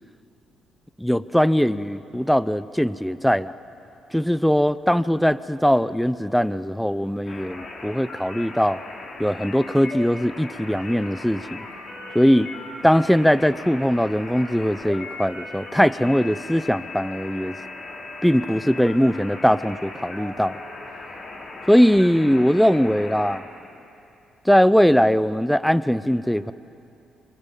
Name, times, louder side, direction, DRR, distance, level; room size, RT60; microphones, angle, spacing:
voice 1, 1.0-3.5 4.1-8.8 9.2-11.6 12.1-12.5 12.8-17.6 18.2-20.6 21.7-23.4 24.5-26.5, equal, ahead, 16 dB, 0.7 m, -20 dB
sound 1, 7.3-23.4, left 3 dB, 50° left, 4.2 m, -38 dB
25.5 x 23.0 x 7.5 m, 2.7 s
cardioid pair, 90°, 0 cm